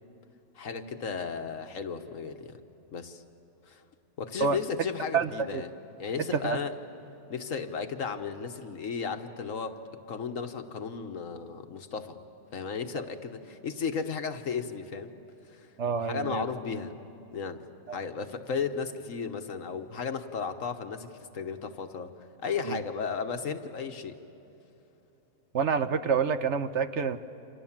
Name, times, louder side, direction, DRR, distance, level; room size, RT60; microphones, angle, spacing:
voice 1, 0.5-2.6 2.9-3.2 3.7-3.8 4.2-5.7 6.0-6.8 7.3-9.8 10.1-12.2 12.5-15.1 15.5-15.7 16.0-16.9 17.3-17.6 17.9-22.1 22.4-24.2, left 5 dB, 70° left, 7 dB, 1.6 m, -34 dB
voice 2, 5.1-5.6 6.3-6.6 15.8-16.4 17.9-18.0 22.6-22.8 25.5-27.2, right 6 dB, 60° right, 10 dB, 1.1 m, -28 dB
29.0 x 27.0 x 7.4 m, 3.0 s
omnidirectional pair, 1.5 m